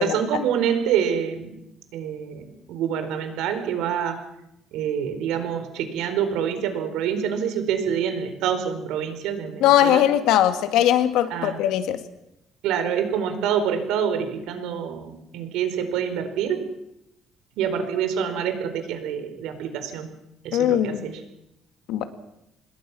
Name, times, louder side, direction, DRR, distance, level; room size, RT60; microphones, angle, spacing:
voice 1, 0.0-1.5 1.9-2.4 2.7-4.2 4.7-10.0 11.3-11.6 12.6-16.6 17.6-20.1 20.4-21.2, right 8 dB, 85° right, 8 dB, 4.4 m, -26 dB
voice 2, 9.6-12.0 20.5-21.1 21.9-22.1, left 11 dB, 80° left, 9 dB, 2.0 m, -20 dB
26.0 x 21.0 x 6.2 m, 0.83 s
cardioid pair, 170°, 0 cm